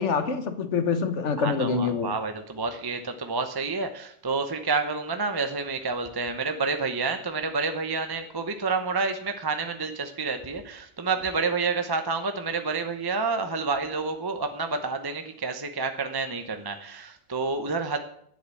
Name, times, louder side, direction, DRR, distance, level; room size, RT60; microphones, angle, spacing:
voice 1, 0.0-2.1, left 5 dB, 45° left, 9 dB, 1.3 m, -26 dB
voice 2, 1.4-18.0, right 4 dB, 25° right, 7 dB, 0.5 m, -29 dB
10.0 x 8.0 x 8.3 m, 0.67 s
omnidirectional pair, 1.9 m